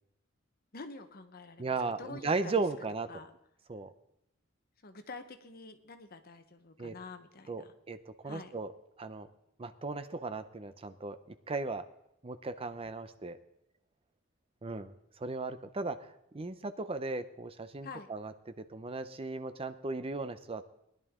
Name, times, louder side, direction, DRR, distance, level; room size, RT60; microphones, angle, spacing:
voice 1, 0.7-2.6 3.1-3.3 4.8-7.7 8.2-8.5 17.8-18.1, left 3 dB, 50° left, 8 dB, 1.0 m, -47 dB
voice 2, 1.6-3.1 3.7-3.9 6.8-6.9 7.5-8.7 9.0-9.3 9.6-11.2 11.5-11.8 12.2-13.4 14.6-14.9 15.2-18.3 18.7-20.6, right 3 dB, 30° right, 10 dB, 0.6 m, -36 dB
19.5 x 11.0 x 3.7 m, 0.81 s
head